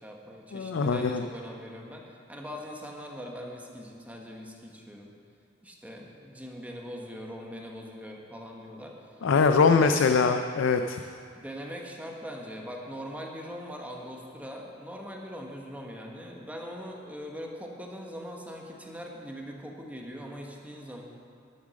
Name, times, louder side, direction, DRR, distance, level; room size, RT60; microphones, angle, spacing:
voice 1, 0.0-2.0 2.3-5.1 5.6-8.9 9.6-10.0 11.3-21.0, equal, 10° right, 0 dB, 1.2 m, -41 dB
voice 2, 0.5-1.2 9.2-11.0, left 4 dB, 65° left, 7 dB, 0.4 m, -22 dB
12.5 x 7.3 x 6.3 m, 2.3 s
head